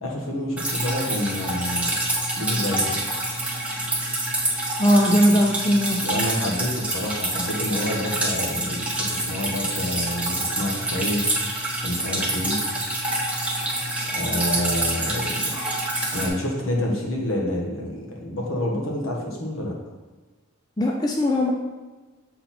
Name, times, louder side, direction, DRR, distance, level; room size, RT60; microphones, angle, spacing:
voice 1, 0.0-2.0 2.3-3.0 6.0-11.3 11.8-12.6 14.1-15.4 16.1-19.8, left 1 dB, 65° left, -1 dB, 1.4 m, -28 dB
Drip, 0.6-16.3, right 1 dB, 5° right, 0.9 m, -27 dB
voice 2, 4.8-6.0 20.8-21.5, equal, 20° left, 0 dB, 0.4 m, -19 dB
6.6 x 4.0 x 4.2 m, 1.2 s
head